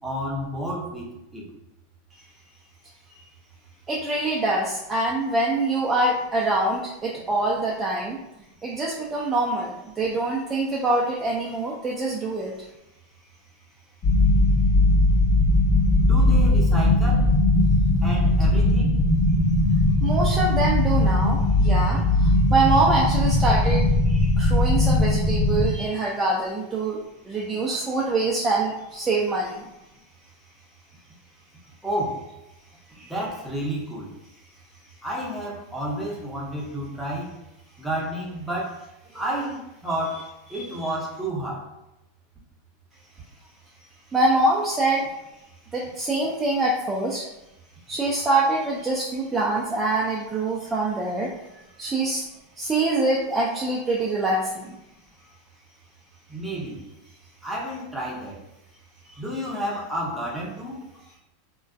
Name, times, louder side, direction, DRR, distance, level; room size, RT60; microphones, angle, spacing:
voice 1, 0.0-1.5 16.0-17.4 18.0-19.0 31.8-32.3 33.0-34.1 35.0-37.3 37.8-38.8 39.1-41.7 56.3-56.8 57.4-58.4 59.2-60.8, right 1 dB, 5° right, -5 dB, 0.8 m, -31 dB
voice 2, 3.9-8.2 8.6-12.5 20.0-29.6 33.0-33.1 40.5-40.7 44.1-45.1 45.7-47.2 47.9-51.3 51.8-52.3 52.6-54.7 59.0-59.1, right 2 dB, 20° right, -3 dB, 0.4 m, -25 dB
sound 1, 14.0-25.7, left 1 dB, 35° left, 0.9 m, -19 dB
2.4 x 2.2 x 2.4 m, 0.94 s
hypercardioid pair, 105°, 0 cm